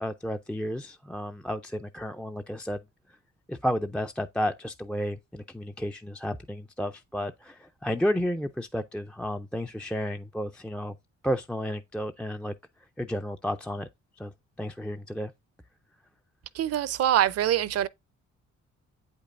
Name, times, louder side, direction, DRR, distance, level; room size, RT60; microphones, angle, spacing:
voice 1, 0.0-2.8 3.5-10.9 11.2-12.5 13.0-13.9 14.2-14.3 14.6-15.3, equal, 5° left, 0.3 m, -32 dB
voice 2, 16.5-17.9, right 11 dB, 55° right, 0.5 m, -24 dB
8.0 x 5.3 x 2.4 m
cardioid pair, 90°, 30 cm